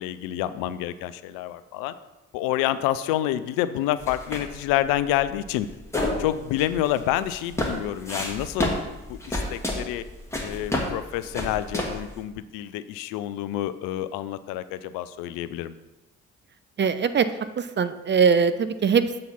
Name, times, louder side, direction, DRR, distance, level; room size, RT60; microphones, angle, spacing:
voice 1, 0.0-1.9 2.3-5.7 6.2-8.7 9.1-10.0 10.4-15.7, left 13 dB, 65° left, 13 dB, 0.5 m, -28 dB
sound 1, 4.0-12.2, left 1 dB, 5° left, 1.8 m, -31 dB
voice 2, 16.8-17.3 17.6-19.2, right 6 dB, 30° right, 12 dB, 0.5 m, -21 dB
7.4 x 4.0 x 5.6 m, 1.0 s
figure-of-eight pair, 40°, 37 cm